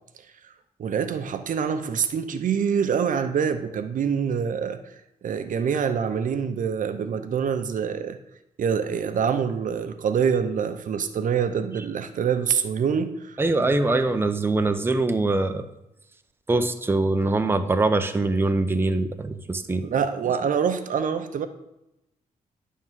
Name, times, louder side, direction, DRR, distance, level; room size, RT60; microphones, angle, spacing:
voice 1, 0.8-4.8 5.2-8.2 8.6-13.4 19.8-21.5, right 7 dB, 65° right, 9 dB, 0.7 m, -25 dB
voice 2, 13.4-15.7 16.5-19.8, right 2 dB, 15° right, 7 dB, 0.7 m, -23 dB
10.5 x 3.7 x 7.4 m, 0.91 s
cardioid pair, 100°, 14 cm